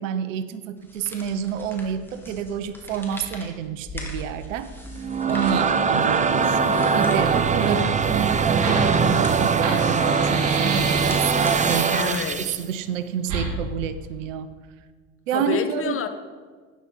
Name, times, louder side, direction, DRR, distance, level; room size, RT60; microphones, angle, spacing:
voice 1, 0.0-4.7 5.3-6.6 6.9-14.5 15.3-16.0, right 8 dB, 75° right, 13 dB, 0.9 m, -29 dB
sound 1, 0.8-12.6, left 1 dB, 5° left, 3.0 m, -42 dB
sound 2, 4.9-12.6, right 5 dB, 20° right, 0.8 m, -21 dB
voice 2, 6.6-7.6 11.9-12.4 15.3-16.1, left 7 dB, 35° left, 9 dB, 1.3 m, -30 dB
Fire, 7.2-11.6 13.2-13.5, right 4 dB, 55° right, 3.4 m, -32 dB
12.5 x 9.5 x 5.7 m, 1.5 s
hypercardioid pair, 75°, 39 cm